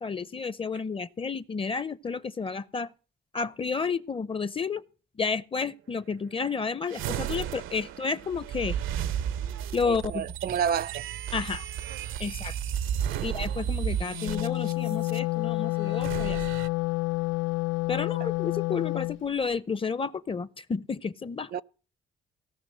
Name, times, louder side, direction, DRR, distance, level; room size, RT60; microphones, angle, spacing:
voice 1, 0.0-2.9 3.3-4.8 5.2-8.8 9.7-10.3 11.3-11.7 12.2-12.5 13.2-16.4 17.9-21.5, left 5 dB, 25° left, 0.6 m, -31 dB
sound 1, 6.9-15.2 15.9-16.7, right 10 dB, 85° right, 0.7 m, -33 dB
voice 2, 9.8-11.0 13.2-13.3 18.0-18.1 21.5-21.6, right 8 dB, 50° right, 0.5 m, -30 dB
Wind instrument woodwind instrument, 14.0-19.2, left 22 dB, 75° left, 0.5 m, -29 dB
17.0 x 6.2 x 7.4 m
cardioid pair, 90°, 20 cm